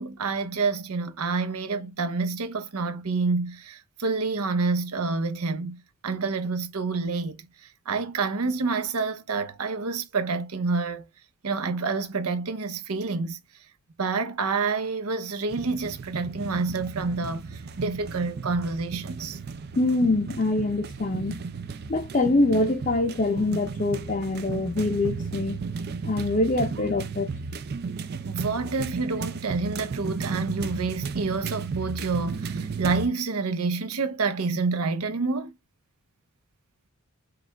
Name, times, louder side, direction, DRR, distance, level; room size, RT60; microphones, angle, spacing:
voice 1, 0.0-11.1 11.4-13.4 14.0-19.4 28.3-35.5, right 4 dB, 80° right, 0.7 m, -28 dB
sound 1, 15.5-33.1, right 4 dB, 45° right, 0.4 m, -34 dB
voice 2, 19.8-21.4 21.9-25.6 26.0-27.3, left 2 dB, 35° left, 0.5 m, -24 dB
4.8 x 2.3 x 3.3 m
head